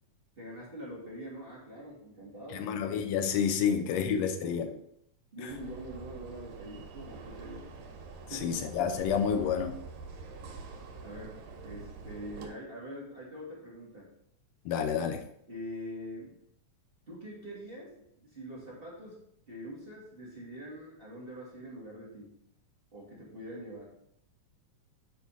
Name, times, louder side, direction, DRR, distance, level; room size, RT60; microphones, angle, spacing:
voice 1, 0.4-2.7 3.7-4.6 5.3-7.7 8.3-8.5 11.0-14.1 15.5-16.4 17.1-19.2 19.5-22.3 22.9-23.8, equal, 20° right, -6 dB, 2.3 m, -44 dB
voice 2, 2.5-4.7 8.4-9.8 14.7-15.2, left 7 dB, 70° left, 7 dB, 1.9 m, -29 dB
sound 1, 5.5-12.5, right 4 dB, 90° right, 2.6 m, -46 dB
9.3 x 5.0 x 4.2 m, 0.74 s
omnidirectional pair, 3.3 m